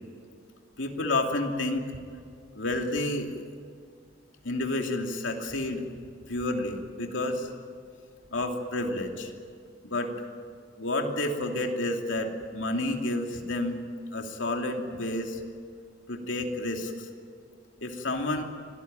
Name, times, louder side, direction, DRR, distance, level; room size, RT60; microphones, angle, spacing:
voice 1, 0.8-1.9 2.5-3.3 4.4-5.8 6.3-7.5 8.3-9.3 9.8-10.1 10.8-13.8 14.1-15.4 16.1-17.1 17.8-18.4, left 2 dB, 85° left, 3 dB, 2.8 m, -30 dB
25.5 x 17.5 x 9.0 m, 2.2 s
head